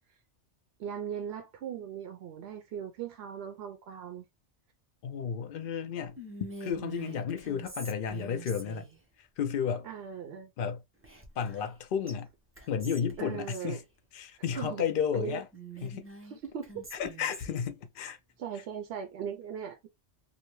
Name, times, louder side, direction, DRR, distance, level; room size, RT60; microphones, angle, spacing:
voice 1, 0.8-4.2 9.8-10.5 13.2-13.8 14.6-14.8 15.1-15.4 16.4-16.9 18.4-19.9, right 8 dB, 65° right, 0.8 m, -39 dB
voice 2, 5.0-6.2 6.6-8.9 9.2-9.9 10.6-10.8 11.4-12.3 12.7-13.8 14.1-15.5 15.8-16.1 16.9-18.2, left 7 dB, 60° left, 0.6 m, -32 dB
Whispering, 6.2-9.0 11.0-11.8 12.1-12.2 12.6-13.7 15.5-17.7, right 3 dB, 20° right, 0.4 m, -46 dB
2.7 x 2.1 x 3.0 m
omnidirectional pair, 1.2 m